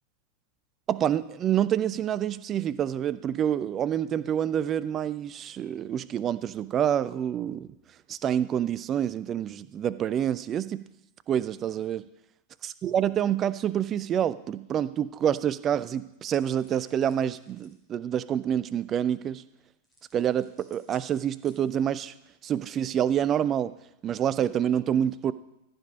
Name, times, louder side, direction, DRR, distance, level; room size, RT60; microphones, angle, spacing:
voice 1, 0.9-7.7 8.1-10.9 11.3-12.0 12.6-19.4 20.1-22.1 22.4-23.7 24.0-25.3, right 9 dB, 30° right, 16 dB, 0.4 m, -27 dB
sound 1, 16.2-17.8 19.8-22.0, equal, ahead, 3.2 m, -60 dB
14.5 x 5.2 x 5.3 m, 0.86 s
figure-of-eight pair, 90°, 0 cm